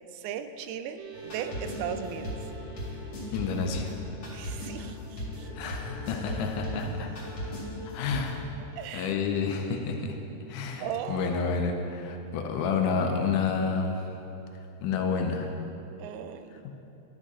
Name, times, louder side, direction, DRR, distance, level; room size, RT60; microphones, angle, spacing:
voice 1, 0.1-2.3 4.3-5.5 8.8-9.1 10.8-11.5 16.0-16.5, right 8 dB, 90° right, 10 dB, 2.1 m, -37 dB
sound 1, 1.0-15.7, equal, 75° right, 2.1 m, -53 dB
sound 2, 1.1-8.4, left 1 dB, 50° left, 3.2 m, -37 dB
voice 2, 3.3-4.0 4.8-4.9 5.6-7.1 7.9-8.4 8.9-10.2 10.5-14.0 14.8-15.6, left 5 dB, 85° left, 4 dB, 2.2 m, -29 dB
13.0 x 6.1 x 4.1 m, 2.9 s
omnidirectional pair, 3.5 m